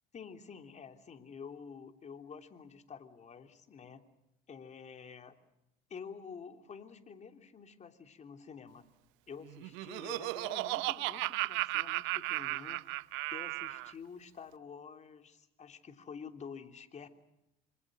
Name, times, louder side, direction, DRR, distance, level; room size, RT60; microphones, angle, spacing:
voice 1, 0.1-4.0 4.5-5.4 5.9-8.9 9.3-12.9 13.3-17.1, left 6 dB, 35° left, 6 dB, 3.2 m, -49 dB
Laughter, 9.5-13.9, right 21 dB, 70° right, 0.8 m, -35 dB
26.5 x 26.0 x 6.4 m, 0.93 s
supercardioid pair, 85°, 20 cm